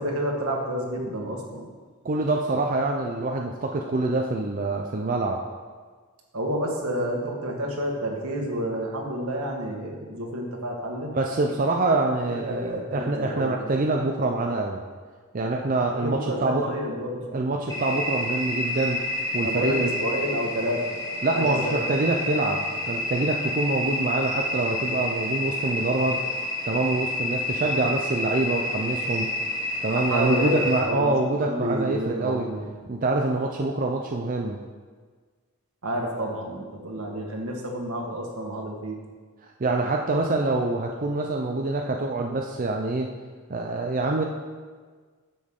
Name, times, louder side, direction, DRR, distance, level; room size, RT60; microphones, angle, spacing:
voice 1, 0.0-1.6 6.3-11.1 12.2-13.7 16.0-17.3 19.4-20.8 21.3-21.8 30.0-31.1 31.4-32.7 35.8-39.0, equal, 75° right, 1 dB, 1.5 m, -29 dB
voice 2, 2.0-5.4 11.1-14.8 15.3-16.7 17.3-19.0 19.3-19.9 21.2-26.2 26.7-29.3 29.8-32.5 32.9-34.6 39.6-43.1 43.5-44.2, right 2 dB, 40° right, 1 dB, 0.5 m, -25 dB
sound 1, 17.7-30.8, left 1 dB, 15° left, 1.3 m, -29 dB
10.0 x 6.8 x 3.7 m, 1.5 s
head